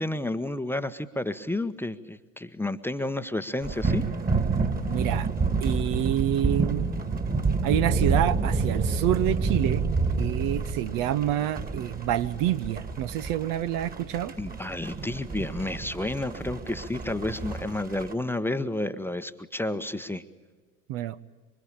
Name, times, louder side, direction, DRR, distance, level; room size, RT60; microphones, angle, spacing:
voice 1, 0.0-4.0 14.4-20.2, left 1 dB, 5° left, 10 dB, 1.1 m, -31 dB
sound 1, 3.6-18.1, right 4 dB, 20° right, 2.4 m, -29 dB
voice 2, 4.9-5.3 5.6-6.9 7.6-9.9 10.2-14.3 20.9-21.2, right 12 dB, 45° right, 13 dB, 1.1 m, -27 dB
26.5 x 24.0 x 8.8 m, 1.4 s
figure-of-eight pair, 75°, 45 cm